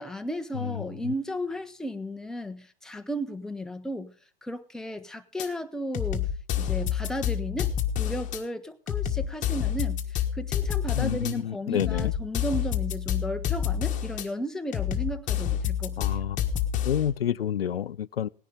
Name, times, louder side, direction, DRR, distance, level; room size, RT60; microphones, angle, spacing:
voice 1, 0.0-4.1 4.4-6.3 6.5-7.7 8.0-16.0, equal, ahead, 0.9 m, -34 dB
voice 2, 0.6-1.1 10.9-12.1 16.0-16.4 16.8-18.3, left 9 dB, 75° left, 0.6 m, -29 dB
sound 1, 5.4-5.5 5.9-8.4 8.9-11.3 11.8-14.3 14.7-17.1, left 9 dB, 25° left, 1.4 m, -28 dB
18.5 x 10.5 x 3.7 m
figure-of-eight pair, 105°, 30 cm